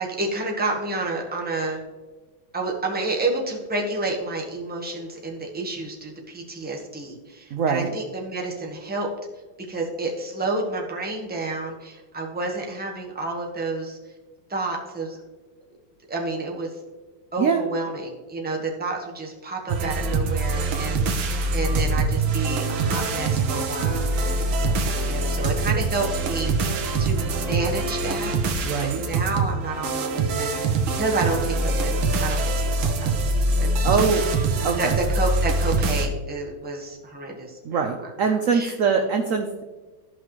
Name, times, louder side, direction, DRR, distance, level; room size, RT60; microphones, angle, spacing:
voice 1, 0.0-1.8 2.5-9.1 9.7-14.0 14.5-15.2 16.1-16.7 17.3-34.1 34.8-37.9 38.2-38.7, right 2 dB, 5° right, -1 dB, 0.9 m, -30 dB
voice 2, 7.5-7.9 17.4-17.6 28.6-29.0 33.8-34.2 34.6-34.8 37.6-39.6, right 6 dB, 70° right, 5 dB, 0.8 m, -23 dB
sound 1, 19.7-36.1, right 3 dB, 90° right, 1.7 m, -24 dB
14.0 x 5.7 x 3.1 m, 1.3 s
omnidirectional pair, 2.1 m